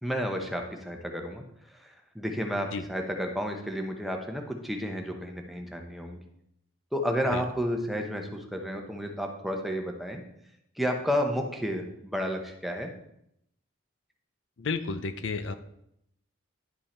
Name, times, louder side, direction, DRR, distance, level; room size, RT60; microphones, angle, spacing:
voice 1, 0.0-6.2 6.9-10.2 10.8-12.9, equal, ahead, 2 dB, 0.8 m, -31 dB
voice 2, 14.6-15.5, left 4 dB, 70° left, 11 dB, 0.5 m, -31 dB
10.5 x 5.5 x 4.3 m, 0.77 s
head